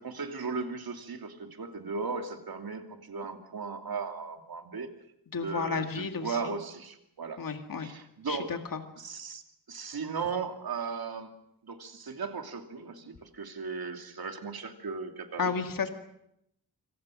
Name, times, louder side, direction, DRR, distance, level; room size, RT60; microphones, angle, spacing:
voice 1, 0.0-4.9 5.4-7.4 7.8-8.6 9.0-9.4 9.7-11.3 11.6-15.5, right 4 dB, 60° right, 5 dB, 2.8 m, -37 dB
voice 2, 5.3-6.5 7.4-7.9 8.3-8.6 15.4-15.9, left 5 dB, 55° left, 6 dB, 2.2 m, -32 dB
27.0 x 26.0 x 6.4 m, 0.79 s
wide cardioid pair, 165°, 41 cm